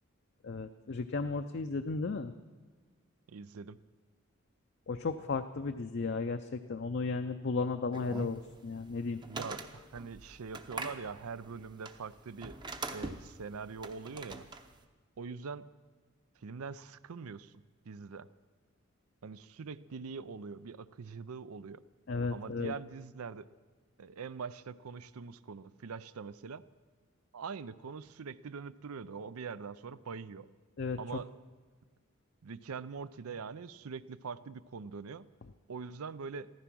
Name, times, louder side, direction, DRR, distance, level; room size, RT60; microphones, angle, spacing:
voice 1, 0.4-2.3 4.9-9.2 22.1-22.7 30.8-31.0, left 4 dB, 50° left, 7 dB, 0.5 m, -34 dB
voice 2, 3.3-3.8 9.2-12.6 12.9-14.4 15.2-15.7 16.4-17.5 17.9-18.3 19.2-21.8 22.3-23.5 24.0-26.6 27.3-30.5 31.0-31.3 32.4-35.3 35.7-36.5, right 5 dB, 85° right, 16 dB, 0.5 m, -43 dB
sound 1, 7.9-14.8, right 2 dB, 20° right, 0.7 m, -44 dB
15.0 x 13.5 x 6.1 m, 1.4 s
head